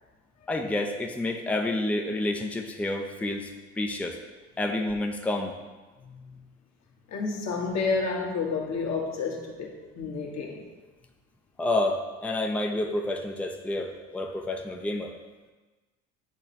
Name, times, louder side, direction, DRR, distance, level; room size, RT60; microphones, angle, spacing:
voice 1, 0.5-4.2 4.6-5.5 11.6-15.2, left 2 dB, 5° left, 3 dB, 0.6 m, -29 dB
voice 2, 6.0-6.4 7.1-10.6, left 4 dB, 50° left, 0 dB, 1.4 m, -30 dB
8.7 x 3.0 x 4.3 m, 1.2 s
hypercardioid pair, 75°, 34 cm